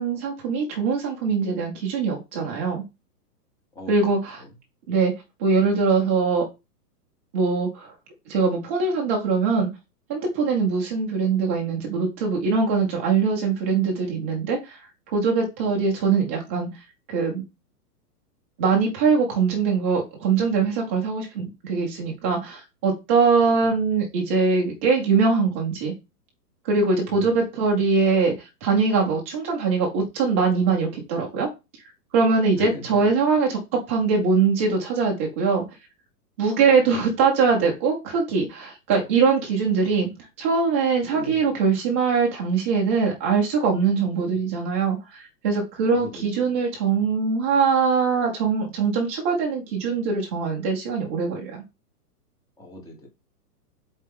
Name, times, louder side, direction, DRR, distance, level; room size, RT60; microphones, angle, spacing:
voice 1, 0.0-2.8 3.9-4.4 4.9-5.1 5.4-6.4 7.3-7.9 8.3-9.7 10.1-14.8 15.1-16.7 17.1-17.4 18.6-25.9 26.6-31.5 32.1-35.6 36.4-40.1 40.4-51.6, right 5 dB, 10° right, 0 dB, 0.5 m, -22 dB
voice 2, 15.7-16.0 23.4-23.7 27.1-27.4 32.5-33.1 41.0-41.4 44.1-44.4 45.9-46.2 52.6-53.1, left 1 dB, 5° left, 1 dB, 1.0 m, -39 dB
7.2 x 4.3 x 3.6 m, 0.25 s
hypercardioid pair, 160°, 49 cm